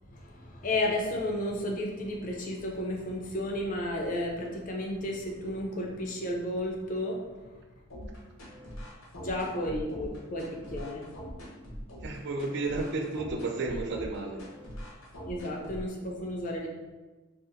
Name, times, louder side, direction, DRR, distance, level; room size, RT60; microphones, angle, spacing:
voice 1, 0.0-7.6 9.1-11.1 15.3-16.7, left 1 dB, 40° left, 0 dB, 0.4 m, -33 dB
sound 1, 7.9-15.9, equal, 90° left, 0.8 m, -42 dB
voice 2, 12.0-14.4, right 3 dB, 55° right, 2 dB, 0.3 m, -32 dB
2.7 x 2.4 x 2.5 m, 1.2 s
head